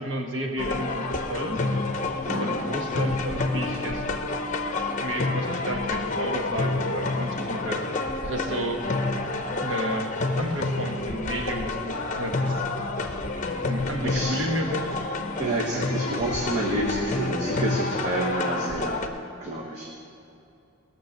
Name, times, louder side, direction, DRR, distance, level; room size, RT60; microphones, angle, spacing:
voice 1, 0.0-1.6 2.3-4.0 5.0-7.9 8.2-8.8 9.6-10.1 10.4-12.6 13.7-15.0, right 1 dB, 55° right, 2 dB, 1.4 m, -31 dB
sound 1, 0.6-19.1, left 2 dB, 35° left, 0.8 m, -29 dB
voice 2, 2.3-2.7 14.0-14.4 15.4-19.0 19.4-19.9, right 1 dB, 30° right, -3 dB, 1.2 m, -29 dB
18.0 x 6.9 x 6.5 m, 2.7 s
head